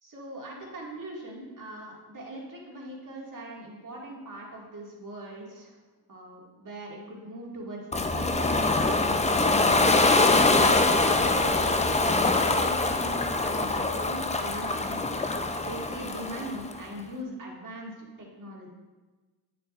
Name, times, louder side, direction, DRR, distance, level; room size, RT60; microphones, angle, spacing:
voice 1, 0.0-5.7 6.1-10.2 10.5-15.0 15.6-18.7, right 1 dB, 45° right, -3 dB, 2.2 m, -40 dB
Ocean, 7.9-16.8, left 2 dB, 15° left, 0.5 m, -24 dB
9.2 x 6.9 x 2.5 m, 1.3 s
cardioid pair, 65°, 44 cm